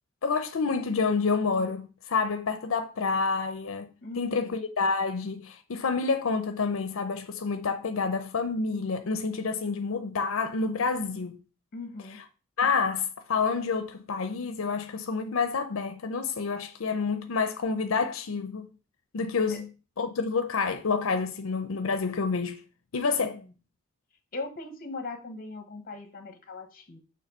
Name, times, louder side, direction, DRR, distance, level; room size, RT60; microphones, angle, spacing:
voice 1, 0.2-3.9 4.2-11.4 12.6-18.7 19.1-19.7 20.0-22.6 22.9-23.4, left 4 dB, 85° left, 0.6 m, -28 dB
voice 2, 4.0-4.6 11.7-12.2 19.5-19.6 23.3-23.4 24.3-27.0, left 3 dB, 45° left, 1.1 m, -39 dB
6.7 x 3.2 x 5.3 m
head